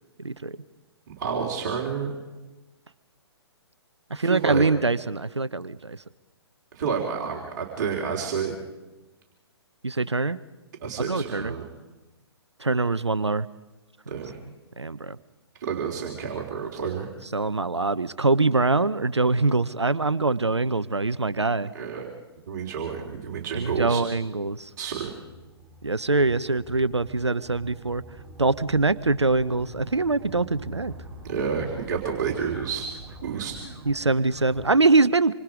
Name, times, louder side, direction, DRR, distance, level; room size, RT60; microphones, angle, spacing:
voice 1, 0.2-0.6 4.1-6.0 9.8-10.4 11.0-11.5 12.6-13.5 14.8-15.2 17.3-21.7 23.6-24.7 25.8-28.0 28.4-30.9 33.9-35.3, right 3 dB, 85° right, 16 dB, 0.8 m, -23 dB
voice 2, 1.1-2.1 4.2-4.6 6.7-8.6 10.8-11.7 14.1-14.4 15.6-17.1 21.7-22.1 22.5-24.0 24.8-25.1 31.2-32.9 33.2-33.6, right 6 dB, 40° right, 0 dB, 3.5 m, -29 dB
sound 1, 22.2-34.7, right 1 dB, 15° right, 4.0 m, -45 dB
27.0 x 25.5 x 5.0 m, 1.1 s
figure-of-eight pair, 125°, 14 cm